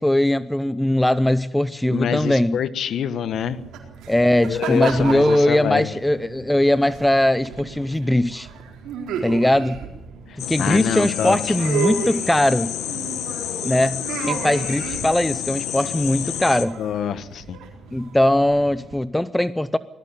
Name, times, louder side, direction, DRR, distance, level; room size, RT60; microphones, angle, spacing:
voice 1, 0.0-2.6 4.1-8.5 9.2-9.8 10.4-12.7 13.6-16.8 17.9-19.8, left 1 dB, 5° left, 15 dB, 0.7 m, -20 dB
voice 2, 1.9-3.6 4.5-5.9 10.6-11.5 16.8-17.6, left 9 dB, 65° left, 12 dB, 1.2 m, -25 dB
sound 1, 3.3-18.9, right 6 dB, 90° right, 4.2 m, -34 dB
sound 2, 10.4-16.7, left 11 dB, 85° left, 1.5 m, -29 dB
20.0 x 14.0 x 10.0 m, 0.99 s
cardioid pair, 90°, 0 cm